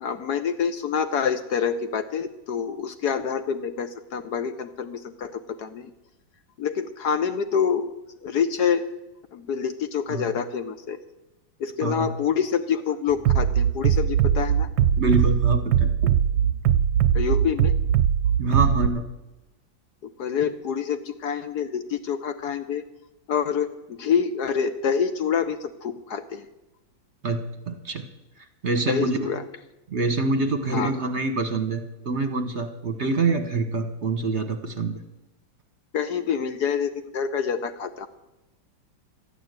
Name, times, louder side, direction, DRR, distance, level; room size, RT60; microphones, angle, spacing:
voice 1, 0.0-5.9 6.6-7.9 8.2-8.8 9.3-11.0 11.6-14.7 17.1-17.7 20.0-22.8 23.3-26.5 28.9-29.4 30.7-30.9 35.9-38.1, left 7 dB, 65° left, 10 dB, 1.1 m, -27 dB
voice 2, 11.8-12.1 15.0-16.1 18.4-19.0 27.2-28.1 28.4-29.3 29.9-35.0, right 3 dB, 40° right, 7 dB, 1.2 m, -26 dB
sound 1, 13.1-18.1, right 1 dB, 5° right, 0.8 m, -45 dB
Bass drum, 13.2-18.9, right 9 dB, 65° right, 1.1 m, -20 dB
13.5 x 10.5 x 8.0 m, 0.99 s
omnidirectional pair, 2.1 m